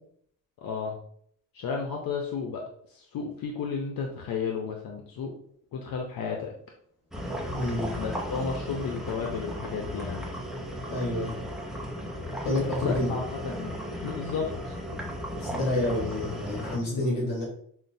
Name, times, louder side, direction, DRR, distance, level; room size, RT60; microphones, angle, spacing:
voice 1, 0.6-1.0 1.5-2.6 2.9-5.3 5.7-6.5 8.0-10.3 12.8-13.7 14.0-14.7 16.9-17.3, left 5 dB, 85° left, 1 dB, 0.6 m, -33 dB
sound 1, 7.1-16.8, equal, ahead, 0.6 m, -35 dB
voice 2, 7.5-7.9 10.9-11.3 12.4-13.1 15.4-17.4, left 1 dB, 70° left, -4 dB, 1.2 m, -28 dB
5.6 x 2.1 x 2.6 m, 0.64 s
wide cardioid pair, 110°, 34 cm